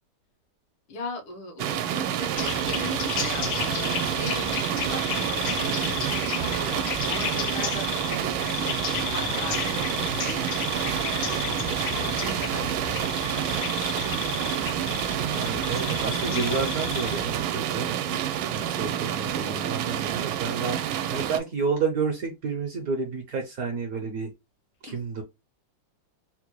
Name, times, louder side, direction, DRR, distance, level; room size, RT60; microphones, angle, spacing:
voice 1, 0.9-14.4 18.5-19.1 24.9-25.0, left 2 dB, 90° left, 2.0 m, -40 dB
sound 1, 1.6-21.4, right 10 dB, 80° right, 1.4 m, -28 dB
sound 2, 2.3-17.4, left 8 dB, 75° left, 1.3 m, -33 dB
voice 2, 15.1-18.2 18.5-24.3 24.8-25.2, right 5 dB, 65° right, 0.9 m, -30 dB
4.2 x 2.2 x 2.9 m
omnidirectional pair, 2.3 m